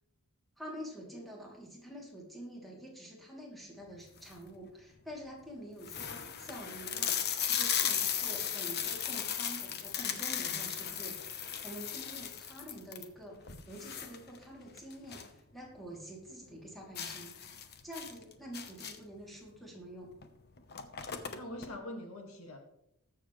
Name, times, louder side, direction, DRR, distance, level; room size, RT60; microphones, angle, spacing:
voice 1, 0.6-17.3 17.8-20.1, equal, ahead, -3 dB, 2.9 m, -47 dB
sound 1, 4.0-4.5 5.1-5.2 5.4-5.5 5.8-15.4 15.7-15.8 16.2-16.3 17.0-19.2 20.1-20.3 20.5-21.7, left 8 dB, 50° left, 1.0 m, -36 dB
voice 2, 21.3-22.6, left 1 dB, 65° left, 3 dB, 2.0 m, -43 dB
20.0 x 7.4 x 3.2 m, 0.79 s
head